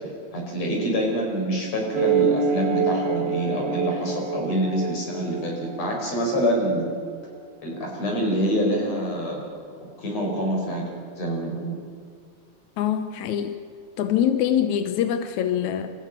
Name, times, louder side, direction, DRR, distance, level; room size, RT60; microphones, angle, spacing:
voice 1, 0.3-7.0 7.6-9.4 10.0-10.9 11.2-11.8, equal, 45° left, 0 dB, 6.0 m, -26 dB
sound 1, 1.9-6.9, right 6 dB, 65° right, 0.6 m, -26 dB
voice 2, 12.8-13.6 14.0-15.9, left 9 dB, 70° left, 9 dB, 1.8 m, -24 dB
27.0 x 14.5 x 8.9 m, 2.2 s
omnidirectional pair, 4.4 m